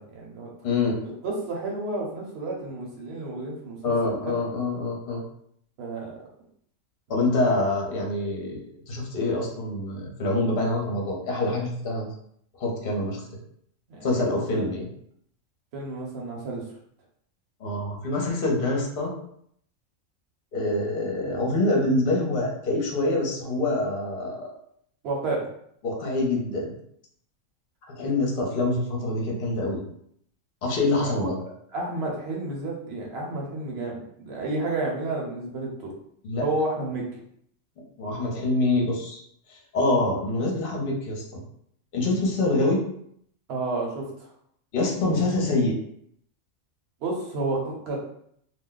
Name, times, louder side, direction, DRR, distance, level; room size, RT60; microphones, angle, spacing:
voice 1, 0.0-0.5 1.0-4.4 5.8-6.1 13.9-14.6 15.7-16.6 25.0-25.5 30.8-31.3 31.7-35.9 36.4-37.2 43.5-44.3 47.0-48.0, right 2 dB, 55° right, -2 dB, 1.0 m, -31 dB
voice 2, 3.8-5.2 7.1-12.1 12.6-13.2 14.0-14.9 17.6-19.1 20.5-24.5 25.8-26.7 27.9-29.8 30.6-31.4 36.2-36.4 38.0-39.2 39.5-41.4 41.9-42.8 44.7-45.7, left 2 dB, 50° left, -1 dB, 0.8 m, -25 dB
2.5 x 2.1 x 3.8 m, 0.69 s
omnidirectional pair, 1.4 m